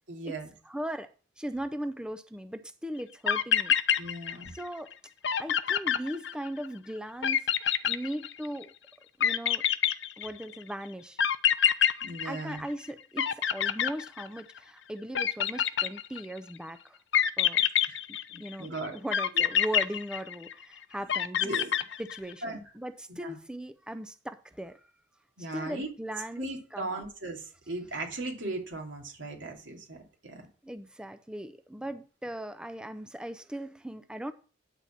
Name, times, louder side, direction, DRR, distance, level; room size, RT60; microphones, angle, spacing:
voice 1, 0.1-0.5 4.0-4.5 12.0-12.7 17.9-18.0 18.3-19.0 19.3-19.4 21.4-21.7 22.4-22.6 23.2-23.4 25.4-25.9 26.4-30.0 30.2-30.4, right 2 dB, 90° right, 2.8 m, -37 dB
voice 2, 0.6-1.1 1.4-3.7 4.5-4.9 5.4-7.5 7.9-8.7 9.2-9.6 10.2-11.2 12.2-17.0 17.4-17.6 18.1-21.5 22.0-24.8 25.5-26.4 26.7-27.0 30.6-34.3, right 1 dB, 5° right, 0.5 m, -38 dB
sound 1, 3.0-3.1 3.3-4.6 4.9-5.0 5.2-6.7 7.2-8.6 9.2-10.5 11.2-12.9 13.2-14.6 15.1-16.4 17.1-18.6 19.1-20.6 21.1-22.3, left 9 dB, 70° left, 0.6 m, -26 dB
9.7 x 4.1 x 7.4 m
head